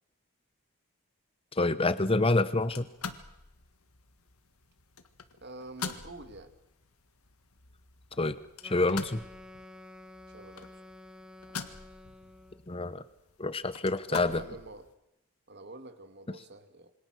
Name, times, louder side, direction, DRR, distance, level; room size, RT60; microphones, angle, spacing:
voice 1, 1.5-2.9 8.2-8.4 8.6-9.2 12.7-13.0 13.4-14.4, left 2 dB, 25° left, 14 dB, 0.9 m, -27 dB
sound 1, 2.6-14.9, left 5 dB, 75° left, 1.7 m, -45 dB
voice 2, 5.4-6.5 10.3-10.8 14.1-14.9 15.5-16.9, right 2 dB, 50° right, 8 dB, 2.1 m, -47 dB
Wind instrument woodwind instrument, 8.6-12.7, left 1 dB, 5° right, 1.0 m, -50 dB
26.5 x 24.5 x 6.4 m, 0.92 s
head